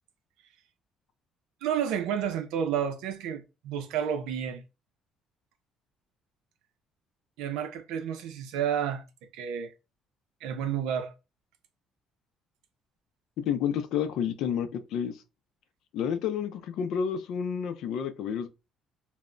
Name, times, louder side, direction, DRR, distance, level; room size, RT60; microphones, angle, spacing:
voice 1, 1.6-4.6 7.4-9.0 9.3-9.7 10.4-11.1, right 8 dB, 90° right, 0.5 m, -30 dB
voice 2, 13.4-15.2 15.9-18.5, left 8 dB, 75° left, 0.4 m, -30 dB
2.1 x 2.0 x 3.7 m
cardioid pair, 105°, 0 cm